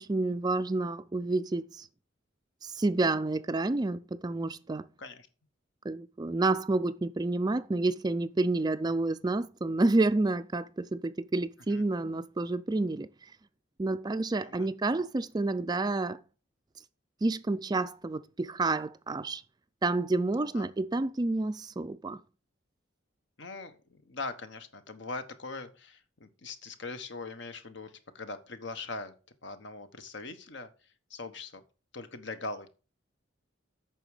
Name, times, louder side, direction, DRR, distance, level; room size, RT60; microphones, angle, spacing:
voice 1, 0.0-1.9 2.6-4.9 5.8-13.1 13.8-16.2 17.2-19.4 19.8-22.2, right 2 dB, 20° right, 0.4 m, -29 dB
voice 2, 23.4-29.1 29.4-31.6 31.9-32.7, left 3 dB, 65° left, 1.2 m, -41 dB
8.9 x 6.1 x 4.9 m
head